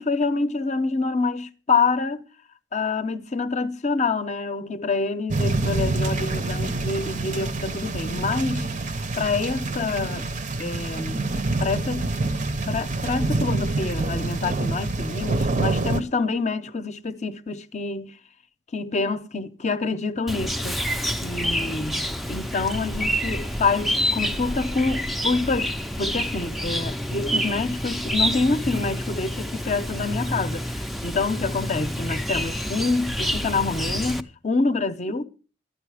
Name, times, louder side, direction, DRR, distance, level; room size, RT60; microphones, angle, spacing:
voice 1, 0.0-2.2 2.7-8.7 9.2-10.2 10.6-11.3 11.6-12.3 12.7-18.2 18.7-20.8 21.2-35.2, left 3 dB, 40° left, 0.7 m, -27 dB
sound 1, 5.3-16.0, right 2 dB, 45° right, 0.7 m, -26 dB
Chirp tweet, 20.3-34.2, equal, ahead, 0.5 m, -28 dB
12.5 x 9.3 x 4.8 m
head